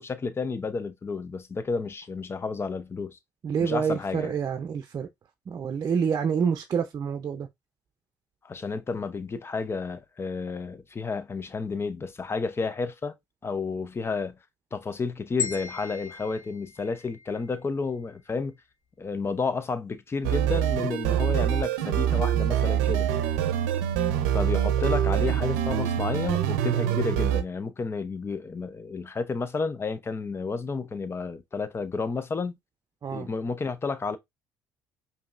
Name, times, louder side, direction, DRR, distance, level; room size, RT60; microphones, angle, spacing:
voice 1, 0.0-3.2 3.6-4.4 8.4-13.2 13.4-14.4 14.7-18.5 19.0-23.1 24.3-32.5 33.1-34.2, left 4 dB, 30° left, 0.7 m, -31 dB
voice 2, 3.4-5.1 5.5-7.5 33.0-33.3, right 6 dB, 45° right, 0.6 m, -27 dB
sound 1, 15.4-17.6, left 7 dB, 65° left, 1.5 m, -37 dB
sound 2, 20.2-27.4, right 10 dB, 90° right, 0.6 m, -25 dB
5.1 x 2.8 x 2.5 m
supercardioid pair, 70°, 9 cm